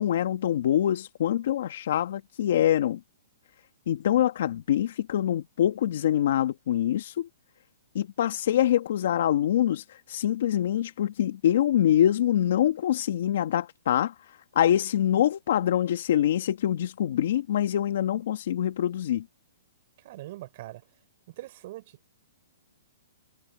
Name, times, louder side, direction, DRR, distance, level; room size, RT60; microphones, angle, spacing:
voice 1, 0.0-3.0 3.9-7.3 7.9-14.1 14.6-19.2, left 11 dB, 55° left, 1.9 m, -25 dB
voice 2, 20.0-20.8 21.3-21.9, right 16 dB, 40° right, 5.7 m, -41 dB
hypercardioid pair, 160°, 0 cm